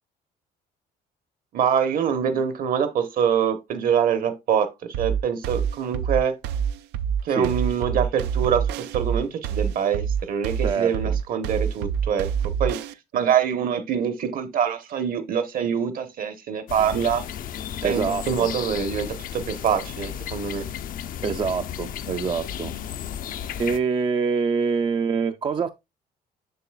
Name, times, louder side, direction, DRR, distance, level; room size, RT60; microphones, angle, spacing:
voice 1, 1.5-6.3 7.2-12.3 12.6-12.8 13.1-17.2 17.8-20.6, right 8 dB, 60° right, 1.0 m, -24 dB
sound 1, 4.9-12.9, right 7 dB, 90° right, 0.5 m, -26 dB
voice 2, 10.6-11.1 17.8-18.5 21.2-22.7 23.6-25.7, right 5 dB, 30° right, 0.4 m, -25 dB
sound 2, 16.7-23.8, left 9 dB, 55° left, 0.5 m, -34 dB
6.8 x 6.6 x 2.3 m
cardioid pair, 110°, 17 cm